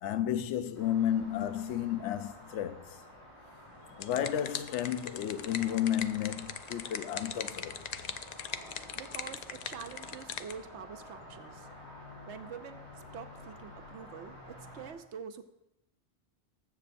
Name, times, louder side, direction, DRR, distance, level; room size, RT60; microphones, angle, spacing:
voice 1, 0.0-3.0 4.0-7.8, left 10 dB, 80° left, 0.9 m, -32 dB
sound 1, 0.7-14.9, left 1 dB, 25° left, 4.4 m, -50 dB
sound 2, 3.7-10.6, left 7 dB, 60° left, 0.4 m, -41 dB
voice 2, 8.9-11.7 12.3-12.8 13.1-15.4, right 7 dB, 80° right, 1.0 m, -46 dB
20.5 x 7.6 x 2.6 m
omnidirectional pair, 1.2 m